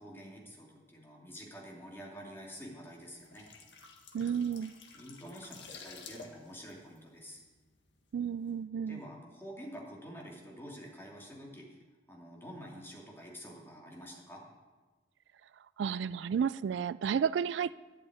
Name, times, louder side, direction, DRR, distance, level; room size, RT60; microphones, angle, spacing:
voice 1, 0.0-3.5 4.9-7.4 8.9-11.8 12.1-14.4, equal, 15° left, -2 dB, 2.7 m, -48 dB
sound 1, 3.1-7.9 8.2-8.4, left 4 dB, 80° left, 1.7 m, -52 dB
voice 2, 4.1-4.7 8.1-9.0 15.8-17.8, right 7 dB, 80° right, 18 dB, 0.3 m, -32 dB
11.5 x 7.7 x 9.3 m, 1.3 s
head